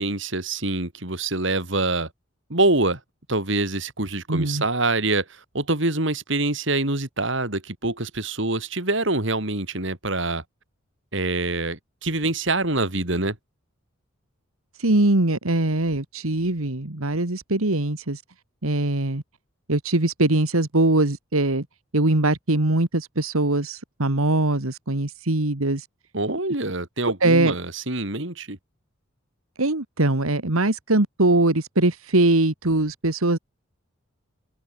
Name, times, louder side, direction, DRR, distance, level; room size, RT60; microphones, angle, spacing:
voice 1, 0.0-2.1 2.5-3.0 3.3-5.2 5.5-10.4 11.1-13.4 26.1-28.6, right 2 dB, 60° right, 3.4 m, -25 dB
voice 2, 4.3-4.6 14.8-18.2 18.6-19.2 19.7-21.7 21.9-25.9 27.2-27.5 29.6-33.4, right 2 dB, 85° right, 2.1 m, -22 dB
head